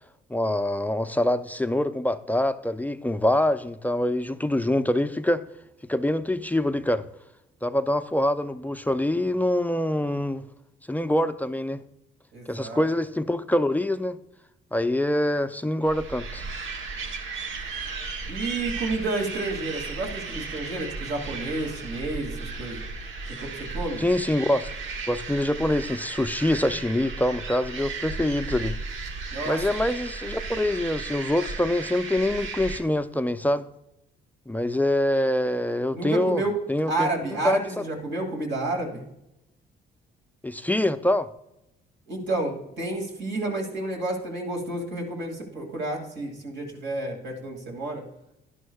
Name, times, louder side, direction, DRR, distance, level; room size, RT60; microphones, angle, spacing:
voice 1, 0.3-5.4 5.9-7.1 7.6-10.5 10.9-11.8 12.5-14.2 14.7-16.5 24.0-24.7 25.1-28.8 29.5-33.7 34.5-36.4 36.7-37.8 40.4-41.3, left 1 dB, 10° left, 10 dB, 0.4 m, -25 dB
voice 2, 12.3-12.8 18.3-22.9 23.4-23.5 23.7-24.0 29.3-29.6 35.9-36.6 36.9-39.1 42.1-48.0, right 2 dB, 65° right, 1 dB, 2.4 m, -30 dB
sound 1, 15.8-32.8, right 4 dB, 80° right, 1.1 m, -35 dB
11.0 x 11.0 x 2.3 m, 0.86 s
cardioid pair, 90°, 20 cm